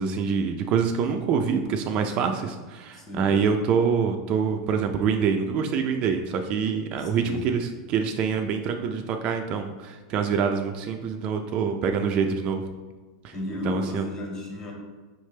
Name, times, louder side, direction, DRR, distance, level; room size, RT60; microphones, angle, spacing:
voice 1, 0.0-12.6 13.2-13.3 13.6-14.0, right 6 dB, 40° right, 5 dB, 0.4 m, -25 dB
voice 2, 2.9-3.4 7.0-7.4 13.3-14.7, left 2 dB, 30° left, -1 dB, 1.4 m, -33 dB
4.9 x 3.2 x 3.2 m, 1.3 s
supercardioid pair, 130°, 3 cm